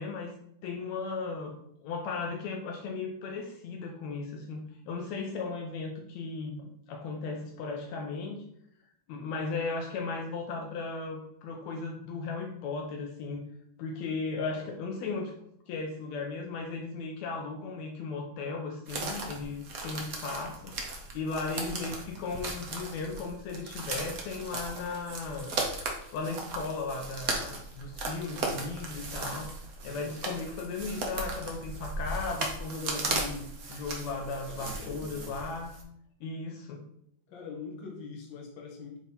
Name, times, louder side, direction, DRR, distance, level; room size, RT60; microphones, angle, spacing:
voice 1, 0.0-1.6 1.8-4.6 4.9-8.5 9.1-13.5 13.8-15.3 15.7-25.6 26.1-29.5 29.8-35.8 36.2-36.8, left 4 dB, 75° left, 2 dB, 2.0 m, -36 dB
sound 1, 18.9-35.8, right 3 dB, 70° right, 0.8 m, -37 dB
voice 2, 34.5-35.3 37.3-39.0, left 4 dB, 45° left, 0 dB, 1.8 m, -43 dB
8.6 x 3.5 x 4.3 m, 0.71 s
omnidirectional pair, 3.3 m